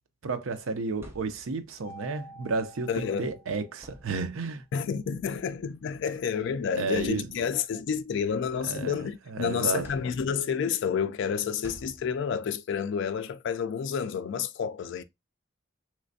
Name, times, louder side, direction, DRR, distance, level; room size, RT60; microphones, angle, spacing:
voice 1, 0.2-4.6 6.8-7.3 8.6-9.0 9.3-9.9, right 3 dB, 75° right, 0.5 m, -32 dB
sound 1, 1.0-1.8 3.1-3.2 3.7-4.6 5.7-5.8 6.4-6.5 6.9-7.7 8.2-9.3 9.8-10.6 11.6-12.5, equal, 10° right, 0.7 m, -51 dB
Mallet percussion, 1.8-4.1, equal, 15° left, 1.0 m, -49 dB
voice 2, 2.9-3.3 4.7-15.0, left 7 dB, 60° left, 0.3 m, -30 dB
3.2 x 3.1 x 2.6 m
head